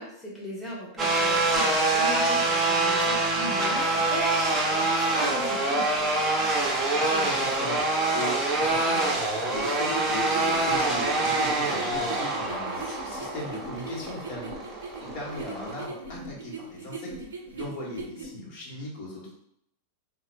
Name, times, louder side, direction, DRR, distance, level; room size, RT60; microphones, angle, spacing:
voice 1, 0.0-5.9, equal, 5° left, -5 dB, 1.0 m, -37 dB
sound 1, 1.0-15.8, right 2 dB, 20° right, 0.8 m, -25 dB
voice 2, 6.8-9.1 9.5-14.5 15.0-17.1 17.6-19.3, left 1 dB, 45° left, -3 dB, 1.2 m, -38 dB
sound 2, 9.5-18.3, right 3 dB, 65° right, 0.5 m, -39 dB
4.1 x 2.2 x 3.1 m, 0.74 s
figure-of-eight pair, 90°, 0 cm